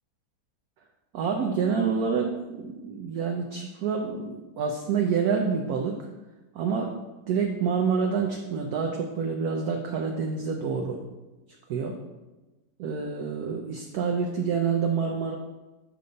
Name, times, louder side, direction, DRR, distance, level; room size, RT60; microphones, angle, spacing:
voice 1, 1.1-6.0 6.5-6.9 7.3-11.0 11.7-12.0 12.8-15.4, right 6 dB, 65° right, 2 dB, 1.0 m, -27 dB
7.7 x 5.1 x 4.0 m, 1.1 s
omnidirectional pair, 2.1 m